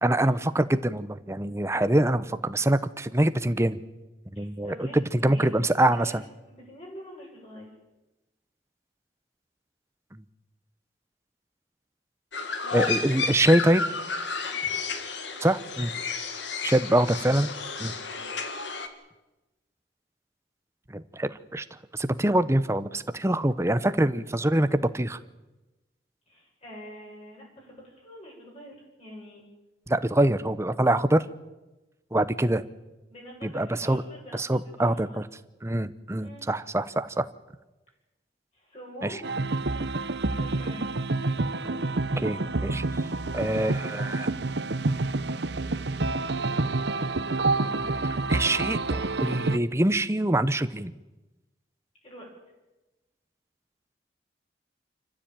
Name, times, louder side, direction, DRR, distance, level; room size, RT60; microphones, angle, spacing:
voice 1, 0.0-3.8 4.4-6.2 10.1-10.2 12.7-13.8 15.4-15.9 16.6-17.5 17.8-17.9 20.9-21.6 21.9-25.2 29.9-31.2 32.1-32.6 33.4-34.0 34.3-35.2 35.6-37.3 39.0-39.2 41.6-43.1 43.3-44.3 47.7-47.9 48.3-50.9, right 1 dB, 15° right, 12 dB, 0.8 m, -25 dB
voice 2, 4.3-7.7 12.6-12.9 14.4-14.7 16.9-17.1 17.7-18.2 26.3-29.4 33.1-35.2 36.2-36.4 38.5-39.2 39.9-40.9 52.0-52.3, equal, 35° left, -3 dB, 7.9 m, -46 dB
sound 1, 12.3-18.9, left 5 dB, 80° left, 2.1 m, -32 dB
sound 2, 39.2-49.6, right 3 dB, 70° right, 0.9 m, -28 dB
26.5 x 15.0 x 9.0 m, 1.1 s
head